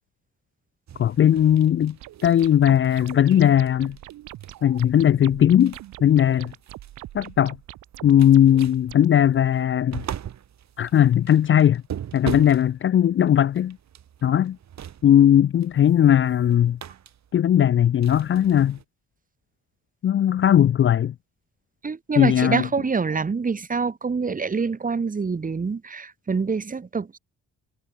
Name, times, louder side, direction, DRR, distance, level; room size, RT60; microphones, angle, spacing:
sound 1, 0.9-18.8, right 10 dB, 65° right, 5.8 m, -41 dB
voice 1, 1.0-2.0 2.2-4.0 4.6-6.5 7.1-7.6 8.0-10.0 10.8-11.8 12.1-13.8 14.2-14.6 15.0-16.8 17.3-18.8 20.0-21.1 22.2-22.7, left 10 dB, 40° left, 0.5 m, -18 dB
sound 2, 2.0-9.1, right 15 dB, 85° right, 3.9 m, -43 dB
voice 2, 21.8-27.2, right 5 dB, 25° right, 1.6 m, -26 dB
cardioid pair, 90°, 30 cm